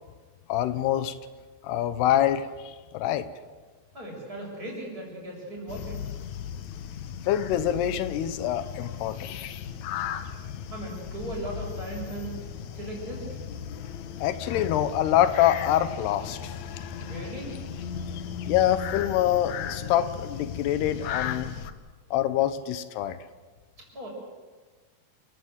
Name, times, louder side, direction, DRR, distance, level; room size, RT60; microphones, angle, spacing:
voice 1, 0.5-1.2 1.6-3.3 7.3-9.4 14.2-16.6 18.5-21.5 22.1-23.2, left 11 dB, 90° left, 13 dB, 3.1 m, -25 dB
voice 2, 3.9-6.0 10.7-12.4 12.7-13.4 17.0-17.5 23.9-24.1, right 1 dB, 20° right, -1 dB, 7.3 m, -37 dB
sound 1, 5.7-21.7, left 8 dB, 70° left, 1.9 m, -36 dB
29.0 x 14.5 x 8.1 m, 1.4 s
omnidirectional pair, 4.6 m